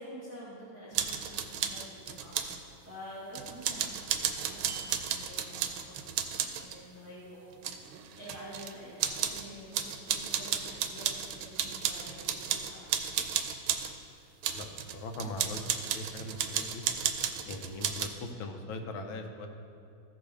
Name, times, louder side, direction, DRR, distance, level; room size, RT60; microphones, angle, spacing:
voice 1, 0.0-2.4 2.8-7.9 8.1-13.4, equal, 10° right, -9 dB, 1.6 m, -48 dB
sound 1, 0.9-2.6 3.3-6.8 7.5-8.7 9.0-9.5 9.7-13.9 14.4-18.1, right 8 dB, 90° right, 1.4 m, -33 dB
voice 2, 14.9-15.6 15.9-16.8 17.4-19.5, left 2 dB, 80° left, 4 dB, 1.6 m, -40 dB
14.5 x 6.3 x 3.4 m, 2.5 s
omnidirectional pair, 2.2 m